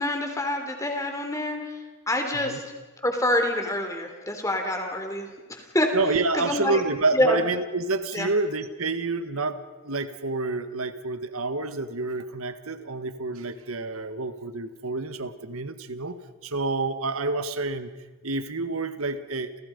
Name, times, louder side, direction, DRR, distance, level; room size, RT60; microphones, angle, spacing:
voice 1, 0.0-1.8 2.1-2.6 3.0-5.9 6.3-6.8 7.1-7.4 8.1-8.3, left 1 dB, 15° left, 4 dB, 3.7 m, -26 dB
voice 2, 5.9-16.2 16.4-17.9 18.2-19.6, right 3 dB, 85° right, 10 dB, 1.6 m, -28 dB
30.0 x 29.5 x 5.4 m, 1.2 s
head